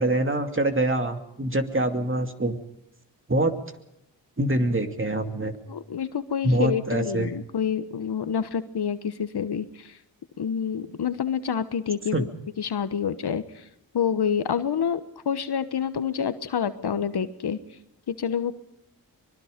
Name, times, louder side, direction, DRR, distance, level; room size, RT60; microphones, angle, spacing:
voice 1, 0.0-2.6 3.3-3.5 4.4-5.5 6.4-7.3 12.1-12.3, right 1 dB, 30° right, 6 dB, 2.6 m, -24 dB
voice 2, 5.7-9.9 10.4-12.3 12.6-13.6 13.9-17.6 18.1-18.5, left 7 dB, 60° left, 12 dB, 1.3 m, -28 dB
24.5 x 21.5 x 5.2 m, 0.80 s
supercardioid pair, 40°, 44 cm